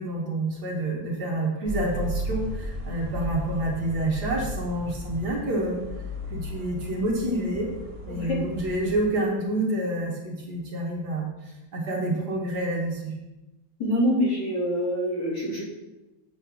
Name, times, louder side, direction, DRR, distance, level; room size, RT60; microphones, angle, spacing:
voice 1, 0.0-5.8 6.3-7.7 8.1-11.3 11.7-13.1, right 1 dB, 55° right, -1 dB, 1.8 m, -28 dB
sound 1, 1.7-9.1, equal, 40° right, 2.0 m, -35 dB
voice 2, 8.1-8.4 13.8-15.6, equal, 55° left, -6 dB, 3.5 m, -25 dB
8.0 x 4.3 x 6.2 m, 1.0 s
omnidirectional pair, 2.2 m